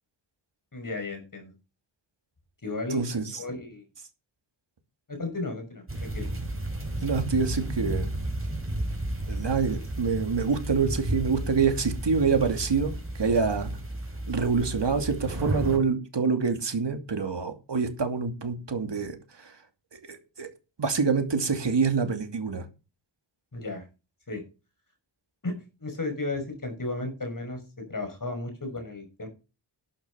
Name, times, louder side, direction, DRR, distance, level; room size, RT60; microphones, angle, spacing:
voice 1, 0.7-1.5 2.6-3.0 3.3-3.8 5.1-6.3 23.5-23.8 24.3-24.4 25.4-25.5 25.8-29.3, left 2 dB, 45° left, 6 dB, 6.1 m, -34 dB
voice 2, 2.9-3.4 7.0-8.1 9.3-13.8 14.3-19.6 19.9-20.5 20.8-22.6, right 5 dB, 65° right, 6 dB, 2.7 m, -26 dB
sound 1, 5.9-15.8, right 1 dB, 30° right, 5.1 m, -32 dB
11.5 x 9.2 x 5.7 m, 0.30 s
wide cardioid pair, 95°, 45 cm